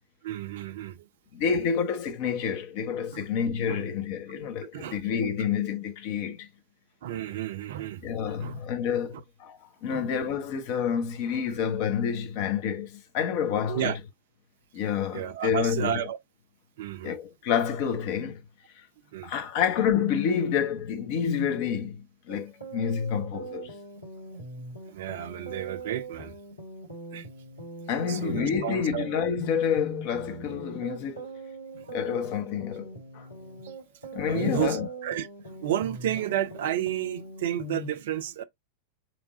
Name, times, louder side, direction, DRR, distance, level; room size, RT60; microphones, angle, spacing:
voice 1, 0.2-1.1 3.1-3.3 3.7-3.8 4.7-5.0 7.0-8.0 8.4-8.6 9.1-9.2 9.9-10.1 13.7-14.0 15.1-16.2 16.8-17.2 19.1-19.3 24.9-26.3 27.1-27.3 28.1-29.1 31.8-31.9 33.6-33.7 34.3-38.4, right 11 dB, 55° right, 0.5 m, -32 dB
voice 2, 1.3-6.5 8.0-13.9 14.7-16.0 17.0-18.4 18.8-18.9 19.2-23.7 27.9-31.3 31.9-32.9 33.1-33.3 34.1-34.9, left 7 dB, 45° left, 1.0 m, -28 dB
sound 1, 22.3-37.9, right 1 dB, 80° left, 2.3 m, -41 dB
3.4 x 3.2 x 3.8 m
figure-of-eight pair, 90°, 0 cm